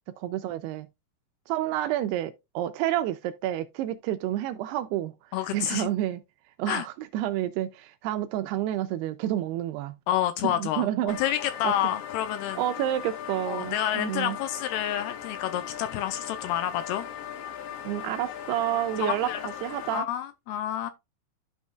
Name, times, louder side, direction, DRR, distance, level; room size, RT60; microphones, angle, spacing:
voice 1, 0.2-0.9 1.5-5.1 5.5-6.2 6.6-10.0 10.4-11.2 11.6-11.7 12.6-14.4 17.8-19.3 19.6-20.1, right 13 dB, 85° right, 2.3 m, -29 dB
voice 2, 5.3-5.9 6.7-6.9 10.1-10.9 11.2-12.6 13.5-17.1 19.0-19.4 19.9-20.9, left 11 dB, 90° left, 2.3 m, -29 dB
sound 1, 11.1-20.0, left 9 dB, 70° left, 3.3 m, -39 dB
12.5 x 5.2 x 2.3 m
omnidirectional pair, 5.1 m